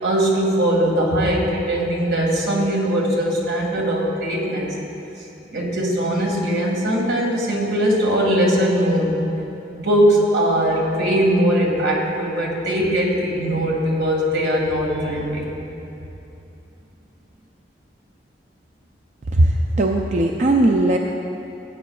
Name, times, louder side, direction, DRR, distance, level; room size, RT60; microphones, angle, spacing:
voice 1, 0.0-4.7 5.2-5.3 5.5-9.2 9.7-15.6, equal, 75° right, -2 dB, 1.9 m, -20 dB
voice 2, 19.3-21.0, right 1 dB, 40° right, 2 dB, 0.4 m, -18 dB
18.0 x 8.9 x 2.3 m, 2.9 s
head